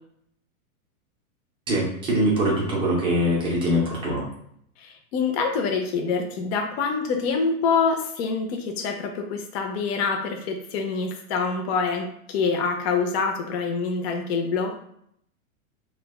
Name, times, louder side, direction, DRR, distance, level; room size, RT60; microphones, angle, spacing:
voice 1, 1.7-4.2, equal, 15° right, -4 dB, 0.4 m, -23 dB
voice 2, 4.8-14.9, left 5 dB, 50° left, 3 dB, 0.5 m, -26 dB
3.2 x 2.2 x 2.3 m, 0.70 s
hypercardioid pair, 130°, 43 cm